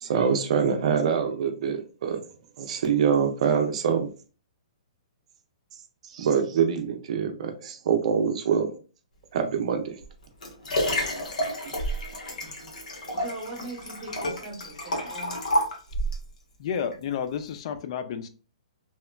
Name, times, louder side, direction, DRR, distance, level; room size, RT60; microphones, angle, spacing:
voice 1, 0.0-2.2 2.6-4.1 6.0-8.7 9.3-10.0 11.7-11.8, right 7 dB, 60° right, 0.5 m, -25 dB
Liquid, 10.0-16.3 16.9-17.0, equal, 85° left, 0.8 m, -30 dB
voice 2, 13.1-15.5, right 2 dB, 35° right, 0.9 m, -40 dB
voice 3, 16.6-18.3, left 7 dB, 50° left, 0.4 m, -31 dB
2.9 x 2.1 x 2.2 m
hypercardioid pair, 135°, 4 cm